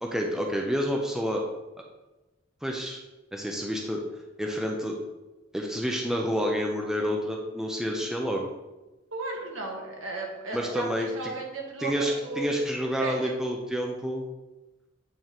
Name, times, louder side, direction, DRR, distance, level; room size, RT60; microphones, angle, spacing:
voice 1, 0.0-1.4 2.6-3.0 3.3-4.0 4.4-4.9 5.5-8.5 10.5-11.1 11.8-14.2, equal, 5° right, 0 dB, 0.5 m, -29 dB
voice 2, 9.1-11.9 12.2-12.5 13.0-13.4, right 2 dB, 75° right, 0 dB, 1.4 m, -35 dB
8.7 x 3.6 x 3.0 m, 1.1 s
head